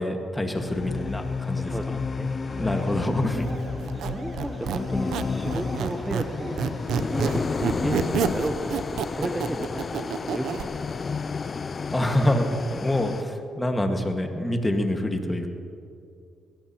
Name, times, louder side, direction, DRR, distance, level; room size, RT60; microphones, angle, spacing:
voice 1, 0.0-2.0 2.6-3.5 11.9-15.5, left 1 dB, 15° left, 4 dB, 1.6 m, -26 dB
sound 1, 0.6-13.2, left 5 dB, 35° left, 0.4 m, -31 dB
voice 2, 1.6-2.3 2.6-2.8 3.9-6.6 6.9-11.1, right 1 dB, 10° right, 4 dB, 0.8 m, -34 dB
sound 2, 2.4-8.3, right 2 dB, 50° right, 2.6 m, -42 dB
Squeak, 3.8-6.3 6.6-10.7, right 8 dB, 75° right, 0.6 m, -29 dB
21.5 x 17.0 x 2.9 m, 2.6 s
cardioid pair, 90°, 0 cm